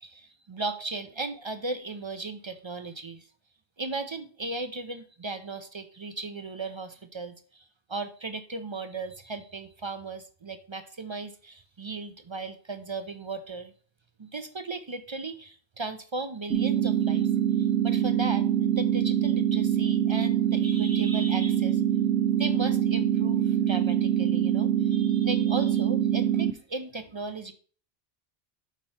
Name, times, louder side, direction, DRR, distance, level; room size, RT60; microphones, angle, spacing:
voice 1, 0.0-3.3 3.8-13.7 14.2-17.3 17.6-21.8 22.4-27.5, right 3 dB, 40° right, 9 dB, 0.4 m, -36 dB
sound 1, 16.5-26.5, right 10 dB, 80° right, 0.9 m, -24 dB
6.0 x 4.4 x 5.4 m, 0.43 s
omnidirectional pair, 1.1 m